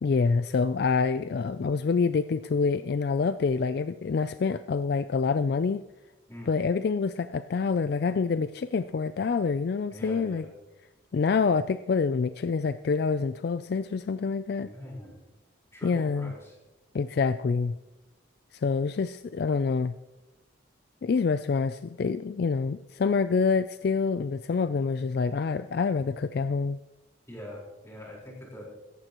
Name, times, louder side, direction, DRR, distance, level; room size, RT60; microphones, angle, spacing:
voice 1, 0.0-5.8 6.5-10.5 11.1-14.7 15.8-16.3 16.9-17.7 18.5-20.0 21.0-26.8, left 5 dB, 50° left, 12 dB, 0.3 m, -26 dB
voice 2, 9.9-10.5 14.6-15.2 15.7-16.6 27.3-28.7, left 1 dB, 15° left, -3 dB, 4.3 m, -43 dB
16.5 x 14.5 x 3.0 m, 1.1 s
head